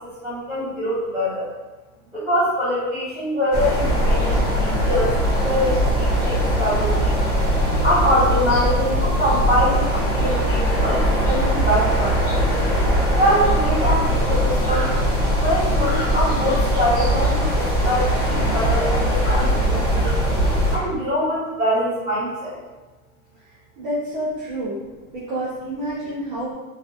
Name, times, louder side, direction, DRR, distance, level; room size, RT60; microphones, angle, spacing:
voice 1, 0.2-1.5 2.1-5.1 5.4-7.2 7.8-12.6 13.2-14.9 15.4-20.1 20.7-22.6, equal, ahead, -16 dB, 1.0 m, -23 dB
sound 1, 3.5-20.8, equal, 30° left, 0.9 m, -20 dB
voice 2, 23.4-24.8 25.1-26.5, right 1 dB, 35° right, -11 dB, 0.5 m, -29 dB
2.4 x 2.3 x 2.4 m, 1.1 s
supercardioid pair, 175°, 46 cm